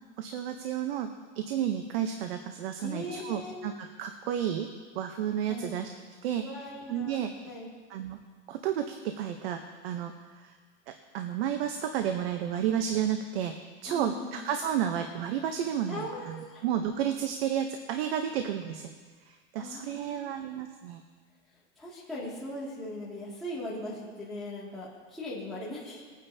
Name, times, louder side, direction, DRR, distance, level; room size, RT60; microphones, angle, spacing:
voice 1, 0.2-1.1 1.4-3.7 4.0-4.7 5.0-5.9 6.2-6.4 6.9-7.3 7.9-8.2 8.5-10.5 11.1-13.5 13.8-18.9 19.3-21.0, right 9 dB, 55° right, 6 dB, 0.9 m, -31 dB
voice 2, 2.8-3.5 5.5-5.8 6.4-7.2 7.4-7.7 13.9-14.4 15.9-16.6 19.6-20.4 21.8-26.0, left 1 dB, ahead, -9 dB, 2.2 m, -39 dB
21.0 x 9.1 x 2.8 m, 1.5 s
supercardioid pair, 160°, 37 cm